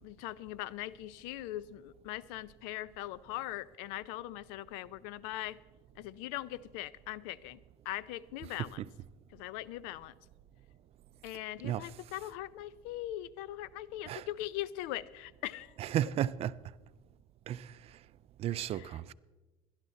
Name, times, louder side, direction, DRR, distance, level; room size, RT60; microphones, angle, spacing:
voice 1, 0.0-5.6 6.0-7.6 7.9-8.8 9.3-10.1 11.2-15.7 18.8-18.9, left 14 dB, 85° left, 0.5 m, -41 dB
voice 2, 15.8-16.5 17.5-17.8 18.4-19.1, right 11 dB, 50° right, 0.4 m, -34 dB
17.5 x 11.5 x 4.1 m
cardioid pair, 110°, 13 cm